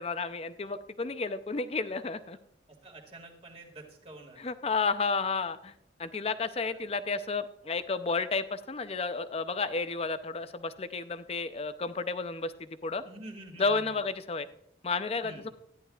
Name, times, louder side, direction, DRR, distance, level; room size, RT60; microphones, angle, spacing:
voice 1, 0.0-2.4 4.4-5.7 6.0-12.5 12.8-13.0 13.6-14.5 14.8-15.5, left 4 dB, 35° left, 12 dB, 0.5 m, -32 dB
voice 2, 2.8-4.4 6.7-6.8 13.0-14.0 15.2-15.5, right 2 dB, 35° right, 2 dB, 2.1 m, -48 dB
13.5 x 11.0 x 2.4 m, 0.77 s
head